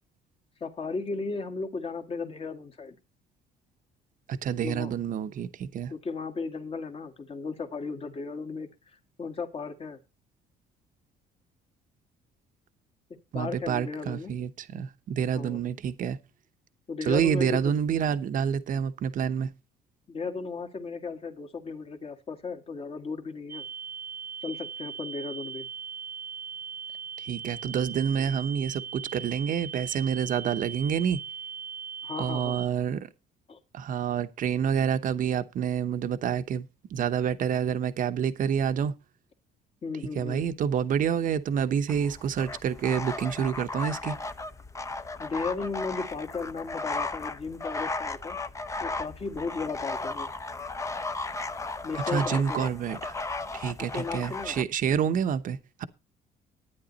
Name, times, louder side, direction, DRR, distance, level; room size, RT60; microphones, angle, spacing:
voice 1, 0.6-3.0 4.5-4.9 5.9-8.7 9.2-10.0 13.3-14.3 15.3-15.6 16.9-17.7 20.1-23.7 24.4-25.7 32.0-32.6 33.5-33.6 39.8-40.5 45.2-48.4 48.8-50.3 51.8-52.7 53.8-54.6, left 4 dB, 35° left, 1.9 m, -35 dB
voice 2, 4.3-5.9 13.3-16.2 17.0-19.5 27.2-31.2 32.2-33.1 33.7-38.9 40.0-44.2 51.9-53.1 53.5-55.8, right 8 dB, 50° right, 1.0 m, -28 dB
sound 1, 23.5-32.7, right 7 dB, 10° right, 1.2 m, -39 dB
sound 2, 41.9-54.6, left 3 dB, 20° left, 0.8 m, -35 dB
12.0 x 9.8 x 4.1 m
cardioid pair, 110°, 17 cm